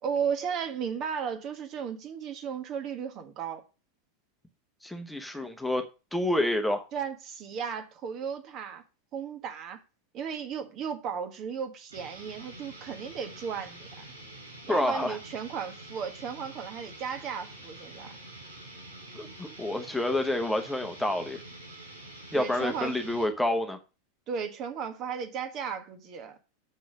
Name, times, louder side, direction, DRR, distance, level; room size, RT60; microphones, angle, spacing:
voice 1, 0.0-3.6 6.9-8.8 9.1-9.8 10.1-13.9 14.7-18.1 22.3-22.9 24.3-26.3, right 7 dB, 40° right, 1.5 m, -35 dB
voice 2, 4.8-5.8 6.1-6.8 14.7-15.2 19.1-21.4 22.3-23.8, left 1 dB, 5° left, 1.1 m, -28 dB
sound 1, 11.9-23.4, right 1 dB, 85° right, 4.4 m, -47 dB
6.6 x 6.1 x 6.2 m
figure-of-eight pair, 90°, 0 cm